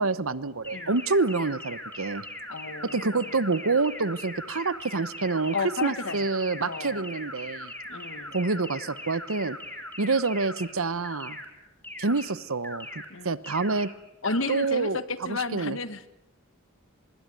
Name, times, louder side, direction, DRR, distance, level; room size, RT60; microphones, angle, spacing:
voice 1, 0.0-2.2 2.8-5.6 5.8-7.7 8.3-9.6 10.0-11.4 12.0-12.9 13.2-13.9 14.5-15.8, right 3 dB, 90° right, 15 dB, 1.1 m, -27 dB
sound 1, 0.6-10.7 11.0-11.5 11.8-12.3 12.6-13.1 13.4-13.9 14.2-14.7, left 1 dB, 10° left, 3.6 m, -40 dB
voice 2, 2.5-3.3 5.5-6.2 6.6-7.1 7.9-8.3 13.1-13.3 14.2-16.1, left 3 dB, 70° left, 11 dB, 1.5 m, -32 dB
24.5 x 21.5 x 9.2 m, 0.97 s
head